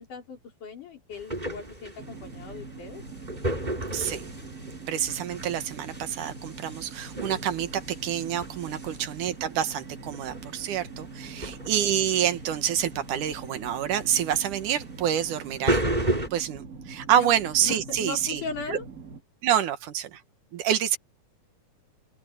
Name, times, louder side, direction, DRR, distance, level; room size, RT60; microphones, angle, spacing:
voice 1, 0.0-3.0 8.8-9.0 11.2-11.5 17.2-17.3 17.6-18.9, left 4 dB, 80° left, 6.2 m, -38 dB
sound 1, 1.1-16.3, right 1 dB, 15° right, 5.1 m, -33 dB
sound 2, 2.0-19.2, right 4 dB, 30° right, 2.2 m, -43 dB
voice 2, 3.9-4.3 4.9-18.4 18.7-18.8 19.4-20.2 20.5-21.0, right 10 dB, 80° right, 2.9 m, -27 dB
open air
omnidirectional pair, 3.5 m